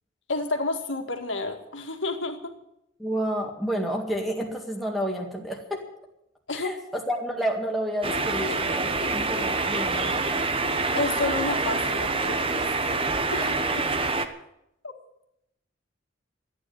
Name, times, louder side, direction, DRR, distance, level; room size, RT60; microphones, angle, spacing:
voice 1, 0.3-2.5 6.5-6.8 8.5-8.6 10.9-12.6 13.3-13.6 14.8-14.9, left 3 dB, 75° left, 5 dB, 2.0 m, -30 dB
voice 2, 3.0-5.8 6.5-10.4 13.4-13.5, equal, ahead, -1 dB, 1.9 m, -30 dB
sound 1, 8.0-14.3, right 3 dB, 30° right, 1.0 m, -26 dB
13.5 x 9.4 x 9.4 m, 0.81 s
head